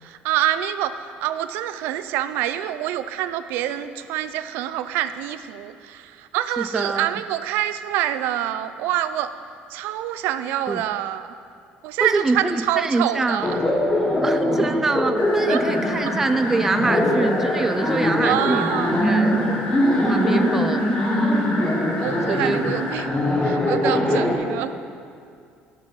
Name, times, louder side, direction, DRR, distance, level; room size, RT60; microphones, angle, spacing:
voice 1, 0.0-9.3 9.7-11.3 11.8-13.6 15.5-15.6 18.2-19.0 22.0-23.1 23.4-24.7, right 12 dB, 75° right, 11 dB, 0.5 m, -26 dB
voice 2, 6.6-7.1 10.7-10.8 12.0-13.4 14.2-18.7 19.0-19.4 20.1-20.8 22.3-22.7, right 3 dB, 10° right, 9 dB, 0.3 m, -24 dB
Laughter, 13.4-24.3, left 1 dB, 15° left, 1.4 m, -22 dB
sound 1, 15.2-23.0, left 2 dB, 65° left, 3.2 m, -32 dB
17.0 x 6.3 x 5.6 m, 2.3 s
cardioid pair, 175°, 4 cm